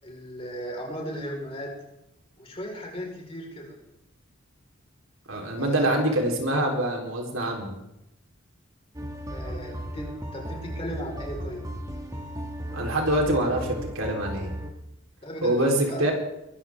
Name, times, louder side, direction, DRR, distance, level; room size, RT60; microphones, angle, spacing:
voice 1, 0.0-1.7 2.4-3.7 5.6-5.9 9.3-11.7 15.2-16.0, equal, 30° left, -1 dB, 4.8 m, -36 dB
voice 2, 5.3-7.7 12.7-14.5 15.4-16.1, right 1 dB, 85° right, 0 dB, 4.1 m, -25 dB
sound 1, 8.9-14.7, equal, 15° right, 1.7 m, -35 dB
22.5 x 14.5 x 3.7 m, 0.87 s
head